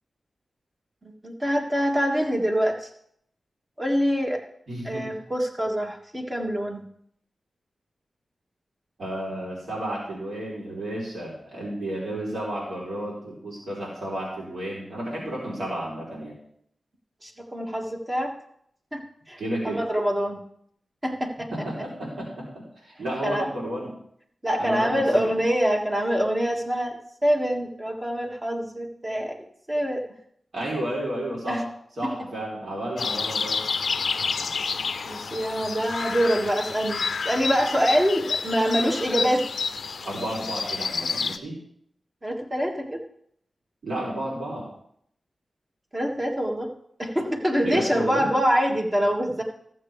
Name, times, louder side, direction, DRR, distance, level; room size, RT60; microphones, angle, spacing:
voice 1, 1.2-2.9 3.8-4.4 4.9-6.8 17.2-18.3 18.9-19.0 19.3-19.4 19.6-20.4 21.0-21.5 23.2-23.5 24.4-29.4 29.7-30.0 31.5-31.6 32.0-32.1 35.0-39.4 42.2-43.0 45.9-46.7 47.0-49.4, equal, 20° right, 1 dB, 1.8 m, -25 dB
voice 2, 4.7-5.2 9.0-16.4 19.4-19.8 21.5-23.9 24.6-25.3 30.5-31.6 32.0-33.6 40.0-41.6 43.8-44.7 47.6-48.3, right 1 dB, 75° right, -5 dB, 3.5 m, -32 dB
sound 1, 33.0-41.4, left 5 dB, 75° left, 0.4 m, -29 dB
14.0 x 7.6 x 3.3 m, 0.68 s
wide cardioid pair, 80°, 0 cm